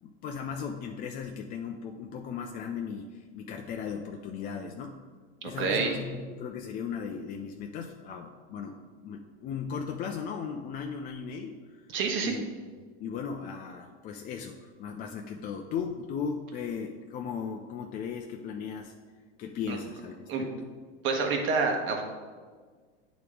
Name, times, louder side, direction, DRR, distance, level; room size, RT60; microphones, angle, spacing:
voice 1, 0.0-5.0 5.4-11.8 12.2-12.5 12.8-18.9 19.4-20.5, left 6 dB, 30° left, 2 dB, 0.4 m, -37 dB
voice 2, 5.4-5.9 11.9-12.3 19.7-19.8 20.3-20.4 21.0-22.0, right 4 dB, 40° right, 2 dB, 1.1 m, -28 dB
8.8 x 3.0 x 4.8 m, 1.5 s
supercardioid pair, 125°, 31 cm